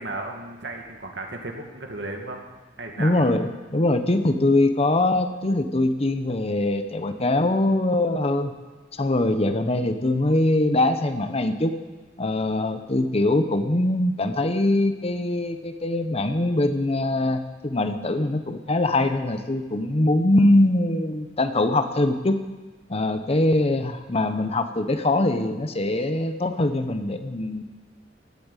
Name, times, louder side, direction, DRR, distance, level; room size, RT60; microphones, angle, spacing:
voice 1, 0.0-2.4 2.8-3.3, right 2 dB, 70° right, 2 dB, 2.2 m, -34 dB
voice 2, 3.0-8.5 8.9-11.8 12.2-22.4 22.9-27.6, left 2 dB, 35° left, 9 dB, 0.9 m, -22 dB
15.5 x 8.6 x 9.2 m, 1.3 s
head